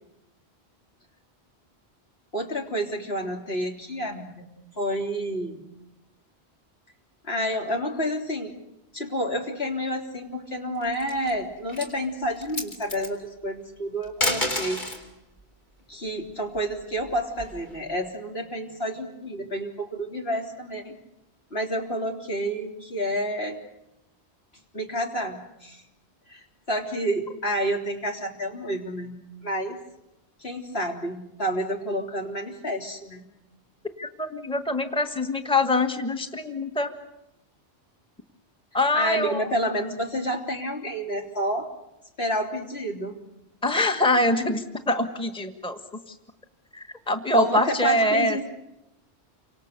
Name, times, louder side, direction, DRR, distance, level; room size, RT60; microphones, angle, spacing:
voice 1, 2.3-4.5 4.8-5.7 7.2-8.6 8.9-14.9 15.9-20.9 21.5-23.6 24.7-25.8 26.3-29.8 30.4-33.2 38.9-41.7 42.2-43.2 47.3-48.5, equal, 65° left, 0 dB, 3.7 m, -29 dB
sound 1, 10.8-11.3 11.7-11.9 12.4-13.1 14.0-15.1 16.5-17.7, left 1 dB, 45° left, 3.8 m, -29 dB
voice 2, 34.0-36.9 38.7-39.4 43.6-46.1 46.7-48.4, left 1 dB, 5° left, 5 dB, 1.5 m, -24 dB
29.5 x 26.0 x 6.8 m, 0.91 s
omnidirectional pair, 1.1 m